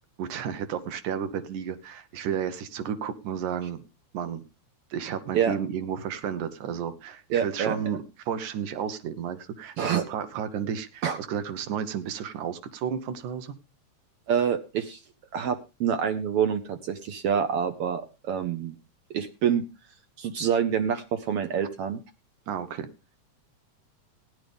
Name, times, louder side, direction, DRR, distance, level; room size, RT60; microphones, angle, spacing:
voice 1, 0.2-3.8 4.1-4.4 4.9-13.5 22.5-22.9, right 8 dB, 85° right, 10 dB, 2.5 m, -32 dB
voice 2, 7.3-7.8 9.8-10.0 11.0-11.2 14.3-15.0 15.3-18.7 19.1-19.6 20.2-22.0, right 8 dB, 70° right, 8 dB, 1.4 m, -26 dB
16.0 x 10.5 x 3.4 m, 0.29 s
omnidirectional pair, 3.3 m